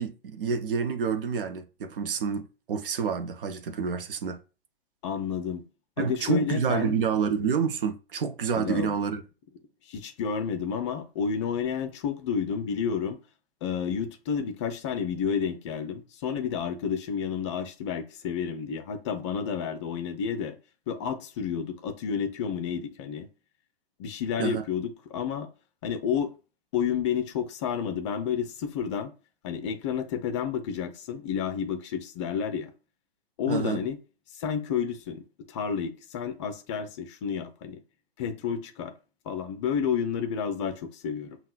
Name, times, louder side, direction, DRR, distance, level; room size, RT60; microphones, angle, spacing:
voice 1, 0.0-4.4 6.0-9.2 24.4-24.6 33.5-33.8, right 6 dB, 60° right, 0.7 m, -28 dB
voice 2, 5.0-5.6 6.0-7.0 8.5-8.9 9.9-13.2 13.6-20.6 20.9-23.3 24.0-25.5 25.8-26.3 26.7-29.1 29.4-32.7 33.4-34.0 34.3-37.8 38.2-38.9 39.3-41.4, left 7 dB, 30° left, 0.5 m, -30 dB
5.4 x 2.3 x 2.3 m
figure-of-eight pair, 115°, 31 cm